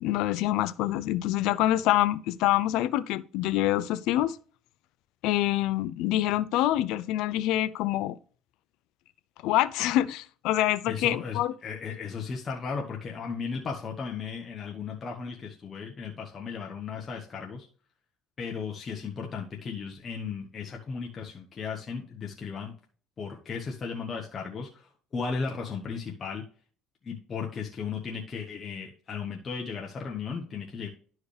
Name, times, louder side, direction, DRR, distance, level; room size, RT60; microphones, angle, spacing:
voice 1, 0.0-4.4 5.2-8.2 9.4-11.5, left 14 dB, 75° left, 0.5 m, -26 dB
voice 2, 10.9-17.7 18.4-22.7 23.2-26.4 27.0-30.9, left 5 dB, 35° left, 1.2 m, -35 dB
11.5 x 4.8 x 3.3 m
cardioid pair, 115°, 0 cm